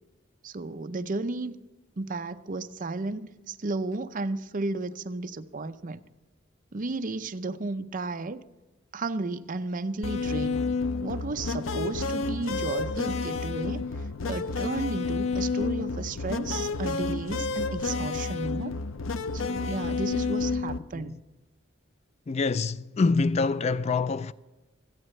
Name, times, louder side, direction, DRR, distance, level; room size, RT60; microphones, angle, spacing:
voice 1, 0.4-1.5 2.0-6.0 6.7-8.5 8.9-10.6 11.0-13.8 14.2-18.7 19.3-21.2, right 3 dB, 40° right, 0.6 m, -33 dB
sound 1, 10.0-20.8, left 4 dB, 80° left, 0.6 m, -30 dB
voice 2, 22.3-24.3, left 4 dB, 35° left, 0.3 m, -26 dB
26.0 x 8.9 x 3.2 m
head